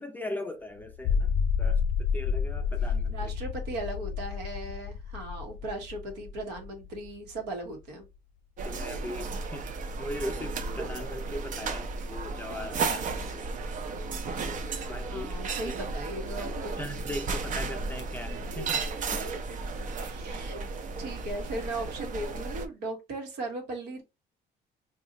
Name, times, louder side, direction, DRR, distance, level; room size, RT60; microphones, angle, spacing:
voice 1, 0.0-1.3 1.6-3.3 8.6-13.4 14.9-15.3 15.6-15.7 16.8-19.4, left 1 dB, 10° left, 0.5 m, -39 dB
sound 1, 0.9-7.4, left 6 dB, 75° left, 0.6 m, -30 dB
voice 2, 3.1-8.1 15.1-16.8 19.9-20.6 21.0-24.0, right 2 dB, 90° right, 1.2 m, -37 dB
sound 2, 8.6-22.7, right 4 dB, 50° right, 0.6 m, -34 dB
2.6 x 2.4 x 3.9 m
cardioid pair, 110°, 17 cm